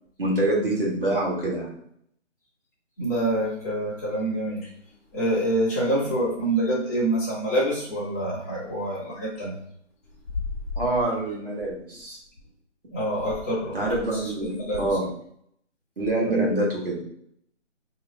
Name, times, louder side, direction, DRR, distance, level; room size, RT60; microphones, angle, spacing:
voice 1, 0.2-1.7 10.8-12.2 13.7-15.1 16.0-17.0, right 1 dB, 45° right, -4 dB, 1.3 m, -26 dB
voice 2, 3.0-4.7 5.1-9.5 12.9-13.9 14.4-14.8 16.3-16.5, right 1 dB, 15° left, -9 dB, 0.9 m, -26 dB
2.9 x 2.6 x 4.3 m, 0.69 s
figure-of-eight pair, 160°, 36 cm